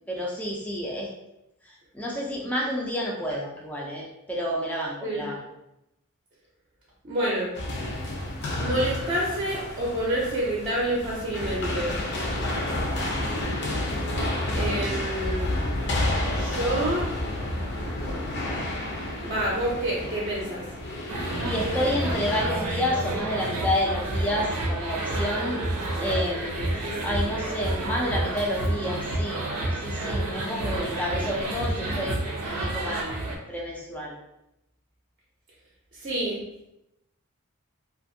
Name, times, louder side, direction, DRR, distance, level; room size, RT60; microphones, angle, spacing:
voice 1, 0.1-1.1 1.7-5.4 21.4-25.6 26.0-29.4 29.7-32.2 32.4-34.1, equal, 5° left, -3 dB, 0.4 m, -30 dB
voice 2, 7.0-7.5 8.6-12.0 14.6-15.5 16.3-17.1 19.2-20.7 35.9-36.4, right 1 dB, 40° right, -5 dB, 0.6 m, -28 dB
sound 1, 7.5-22.4, left 1 dB, 55° left, 0.6 m, -30 dB
sound 2, 21.1-33.4, right 1 dB, 80° right, 0.6 m, -29 dB
2.6 x 2.5 x 2.6 m, 0.87 s
head